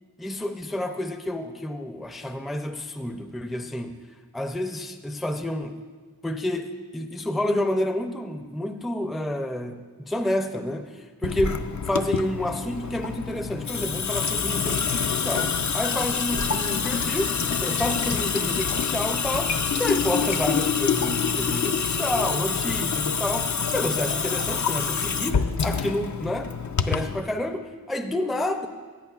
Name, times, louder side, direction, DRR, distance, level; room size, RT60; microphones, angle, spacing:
voice 1, 0.2-4.0 4.3-5.8 6.2-26.4 26.8-28.7, left 1 dB, ahead, 7 dB, 0.4 m, -29 dB
Water tap faucet / Sink (filling or washing) / Drip, 11.2-27.2, left 6 dB, 50° left, 0.4 m, -26 dB
16.5 x 8.5 x 2.4 m, 1.5 s
wide cardioid pair, 50°, 37 cm